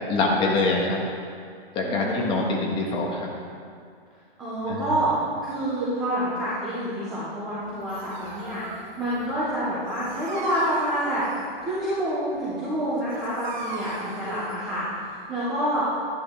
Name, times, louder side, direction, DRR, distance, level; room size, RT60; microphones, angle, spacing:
voice 1, 0.1-1.0 1.7-3.3 4.7-4.9, left 3 dB, 15° left, -1 dB, 1.3 m, -24 dB
voice 2, 1.8-2.5 4.4-11.3 11.6-16.0, right 1 dB, 5° right, -10 dB, 0.3 m, -28 dB
Dog, 7.6-15.5, right 3 dB, 50° right, 1.6 m, -41 dB
12.0 x 10.5 x 3.5 m, 2.3 s
hypercardioid pair, 160°, 30 cm